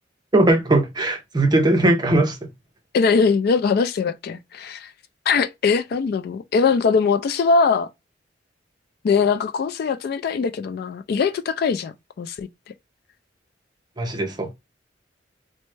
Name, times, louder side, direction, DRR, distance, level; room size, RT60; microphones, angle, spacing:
voice 1, 0.3-2.5 14.0-14.5, right 2 dB, 25° right, 0.6 m, -19 dB
voice 2, 2.9-4.9 5.3-7.9 9.0-12.5, left 5 dB, 55° left, 0.3 m, -21 dB
3.2 x 2.1 x 3.1 m
head